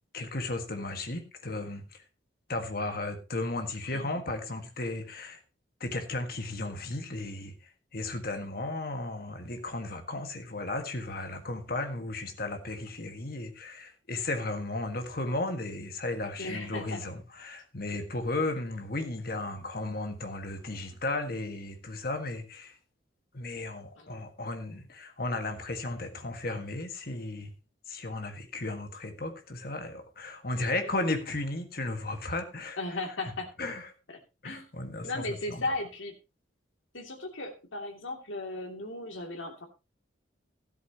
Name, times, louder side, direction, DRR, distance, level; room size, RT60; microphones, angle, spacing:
voice 1, 0.1-2.0 2.5-5.4 5.8-7.5 7.9-22.8 23.3-27.5 27.9-32.8 33.6-33.9 34.4-35.7, left 2 dB, 50° left, 1.7 m, -35 dB
voice 2, 16.4-17.0 24.0-24.1 32.8-33.5 34.1-34.2 34.4-34.7 35.0-36.1 36.9-39.7, left 2 dB, 85° left, 2.7 m, -36 dB
13.5 x 12.0 x 2.9 m
head